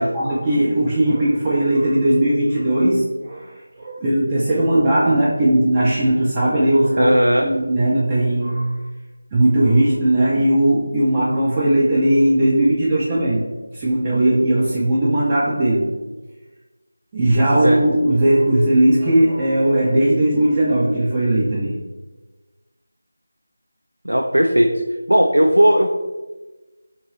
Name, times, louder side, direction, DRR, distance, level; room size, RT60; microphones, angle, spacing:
voice 1, 0.0-7.1 7.4-8.7 9.3-13.5 13.7-15.9 17.1-21.8, right 1 dB, 15° right, -7 dB, 0.4 m, -18 dB
voice 2, 7.0-7.5 17.6-17.8 24.0-24.7 25.1-25.9, equal, 85° right, 3 dB, 0.3 m, -16 dB
3.8 x 3.0 x 3.1 m, 1.2 s
figure-of-eight pair, 165°, 0 cm